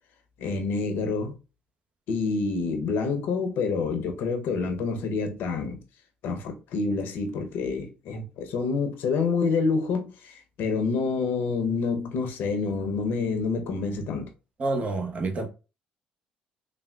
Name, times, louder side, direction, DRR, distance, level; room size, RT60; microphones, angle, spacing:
voice 1, 0.4-1.3 2.1-5.8 6.2-14.3, left 4 dB, 65° left, 0.7 m, -27 dB
voice 2, 14.6-15.5, right 3 dB, 40° right, 0.8 m, -28 dB
3.3 x 2.4 x 2.2 m
hypercardioid pair, 60°, 4 cm